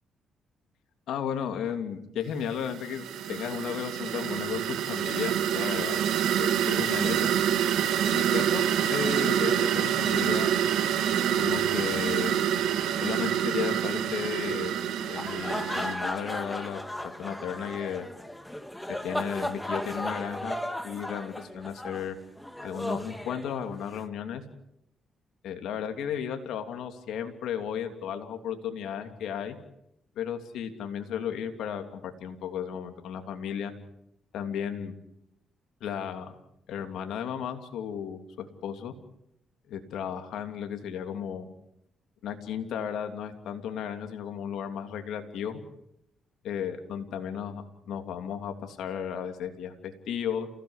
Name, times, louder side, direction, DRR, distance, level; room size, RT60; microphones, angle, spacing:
voice 1, 1.1-6.0 6.4-7.3 8.1-10.5 11.4-12.3 13.0-14.7 15.1-18.1 18.9-20.6 20.8-22.2 22.6-24.4 25.4-29.6 30.1-33.7 34.3-35.0 35.8-36.4 36.7-38.9 39.7-41.5 42.2-45.6 46.4-50.5, left 8 dB, 80° left, 6 dB, 3.0 m, -34 dB
sound 1, 2.6-15.9, right 9 dB, 80° right, 2.7 m, -27 dB
sound 2, 15.0-24.0, left 1 dB, 5° left, 2.0 m, -35 dB
29.5 x 17.0 x 8.2 m, 0.80 s
cardioid pair, 90°, 0 cm